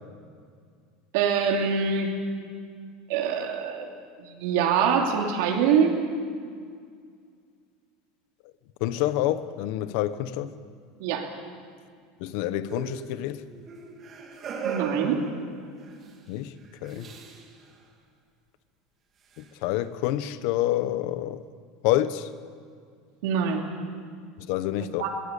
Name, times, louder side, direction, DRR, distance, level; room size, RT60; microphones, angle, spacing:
voice 1, 1.1-2.1 3.1-3.9 4.2-6.0 11.0-11.3 14.6-15.2 23.2-23.6 25.0-25.1, right 6 dB, 65° right, 3.0 m, -24 dB
voice 2, 8.8-10.5 12.2-13.4 16.3-16.5 16.8-17.1 19.4-21.4 21.8-22.3 24.4-25.0, left 13 dB, 55° left, 1.0 m, -27 dB
sound 1, 12.7-16.1 16.8-17.5 19.4-19.5, right 6 dB, 25° right, 2.8 m, -37 dB
21.0 x 19.0 x 8.4 m
supercardioid pair, 165°, 0 cm